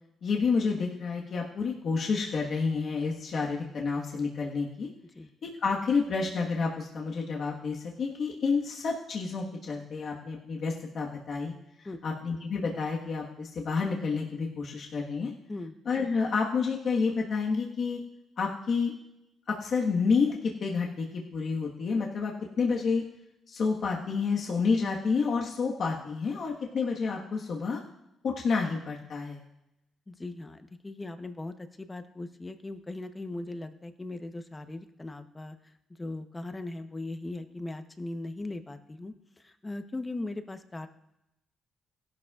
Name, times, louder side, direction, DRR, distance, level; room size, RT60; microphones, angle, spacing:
voice 1, 0.2-4.9 5.4-15.3 15.8-18.0 18.4-18.9 19.5-23.0 23.5-27.8 28.2-29.4, left 5 dB, 55° left, -1 dB, 1.4 m, -29 dB
voice 2, 30.1-35.7 36.0-40.9, left 2 dB, 20° left, 8 dB, 0.9 m, -39 dB
17.0 x 11.5 x 2.4 m, 0.87 s
cardioid pair, 90°, 0 cm